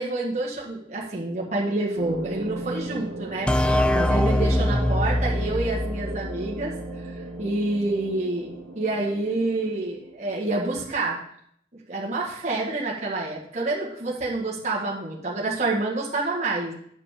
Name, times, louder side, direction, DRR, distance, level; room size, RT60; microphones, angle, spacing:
voice 1, 0.0-3.5 3.9-6.7 7.4-8.5 8.7-11.2 11.9-16.7, right 2 dB, 40° right, -5 dB, 1.6 m, -28 dB
sound 1, 2.0-10.6, right 2 dB, 80° right, 1.2 m, -36 dB
sound 2, 3.5-7.0, left 1 dB, 5° left, 0.3 m, -23 dB
9.5 x 5.2 x 5.0 m, 0.69 s
head